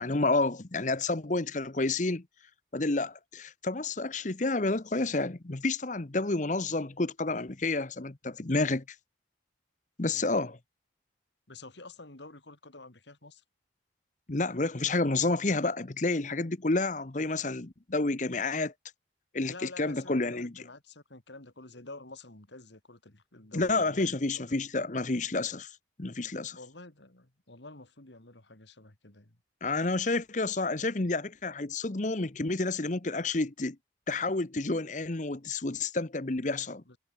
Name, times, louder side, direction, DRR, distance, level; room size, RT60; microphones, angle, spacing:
voice 1, 0.0-2.2 2.7-8.8 10.0-10.6 14.3-18.7 19.3-20.5 23.5-25.7 26.0-26.6 29.6-33.8 34.1-37.0, left 3 dB, 40° left, 1.0 m, -30 dB
voice 2, 11.5-13.4 19.4-24.4 26.5-29.4 36.9-37.0, left 2 dB, 70° left, 2.9 m, -49 dB
head